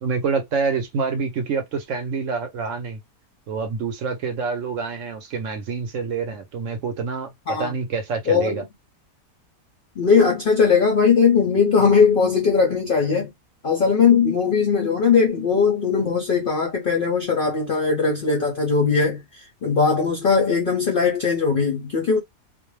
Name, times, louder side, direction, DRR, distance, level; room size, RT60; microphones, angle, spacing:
voice 1, 0.0-3.0 3.5-8.6, right 5 dB, 65° right, 0.9 m, -27 dB
voice 2, 8.3-8.6 10.0-13.3 13.6-22.2, left 5 dB, 60° left, 0.5 m, -19 dB
2.5 x 2.1 x 3.0 m
omnidirectional pair, 1.6 m